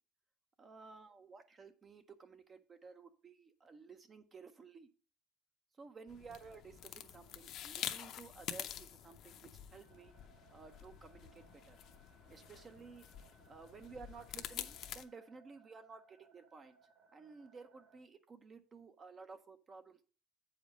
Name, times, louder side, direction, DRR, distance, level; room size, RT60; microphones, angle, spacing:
voice 1, 0.6-4.9 5.8-10.1 10.5-11.8 12.3-13.0 13.5-16.8 17.1-20.0, right 4 dB, 20° right, 10 dB, 0.5 m, -55 dB
sound 1, 6.1-15.0, left 11 dB, 45° left, 0.6 m, -47 dB
sound 2, 9.8-18.0, right 5 dB, 50° right, 1.6 m, -67 dB
8.2 x 5.1 x 5.1 m, 0.38 s
cardioid pair, 170°, 0 cm